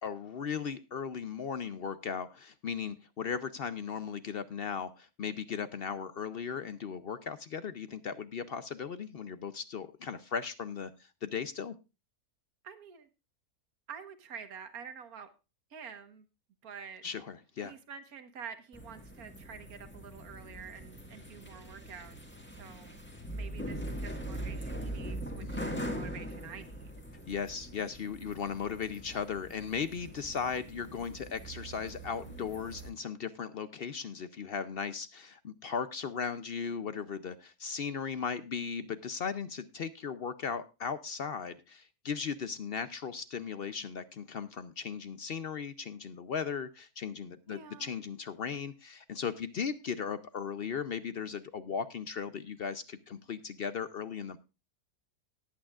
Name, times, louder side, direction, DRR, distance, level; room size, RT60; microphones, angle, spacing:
voice 1, 0.0-10.9 11.2-11.7 17.0-17.7 25.4-25.7 27.3-54.4, left 6 dB, 60° left, 13 dB, 0.6 m, -37 dB
voice 2, 12.6-13.1 13.9-15.3 15.7-16.2 16.6-17.1 17.6-22.1 22.6-22.9 23.3-26.9 47.5-47.9, right 7 dB, 70° right, 9 dB, 1.7 m, -48 dB
sound 1, 18.7-32.9, right 1 dB, 5° left, 1.6 m, -42 dB
18.5 x 8.8 x 2.4 m, 0.28 s
omnidirectional pair, 1.6 m